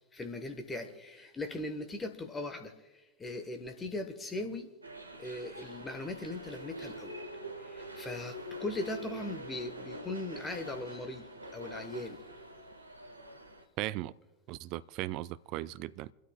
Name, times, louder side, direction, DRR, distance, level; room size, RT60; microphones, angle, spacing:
voice 1, 0.1-4.7 5.2-7.2 7.6-12.2, left 2 dB, 15° left, 1.4 m, -39 dB
sound 1, 4.8-13.6, right 1 dB, 80° right, 1.4 m, -45 dB
voice 2, 13.8-14.1 14.5-16.1, right 16 dB, 40° right, 0.4 m, -37 dB
27.5 x 13.0 x 2.4 m
figure-of-eight pair, 90°, 0 cm